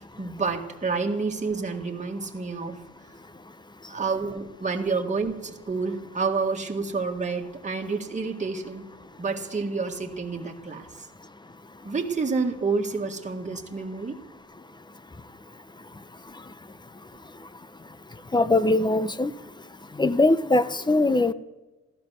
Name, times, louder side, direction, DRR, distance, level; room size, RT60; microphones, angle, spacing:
voice 1, 0.2-2.8 3.9-8.9 9.2-11.1 11.8-14.2, right 4 dB, 25° right, 1 dB, 1.8 m, -29 dB
voice 2, 18.3-19.3 20.0-21.3, left 2 dB, 15° left, 14 dB, 0.7 m, -21 dB
14.5 x 12.5 x 6.5 m, 1.2 s
cardioid pair, 90°, 30 cm